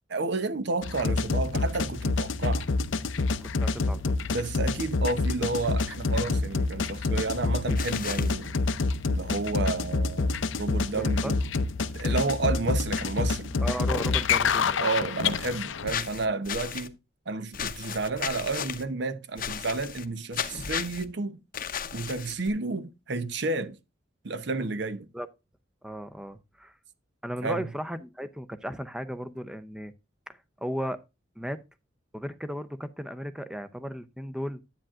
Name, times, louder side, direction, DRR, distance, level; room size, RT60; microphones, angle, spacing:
voice 1, 0.1-2.7 4.3-8.5 9.1-11.4 11.9-13.6 14.8-17.0 17.3-21.4 21.9-23.8 24.2-25.1 27.4-27.7, right 3 dB, 65° right, 0.8 m, -31 dB
sound 1, 0.8-15.9, left 4 dB, 80° left, 0.6 m, -27 dB
voice 2, 3.4-4.1 11.0-11.3 13.6-14.9 25.1-25.3 25.8-26.7 27.2-29.9 30.3-31.0 31.4-31.6 32.1-34.7, equal, 5° right, 0.6 m, -35 dB
sound 2, 7.7-8.3 15.9-16.9 17.5-18.8 19.4-20.1 20.3-21.0 21.5-22.5, left 8 dB, 45° left, 0.7 m, -34 dB
10.0 x 8.7 x 2.4 m
head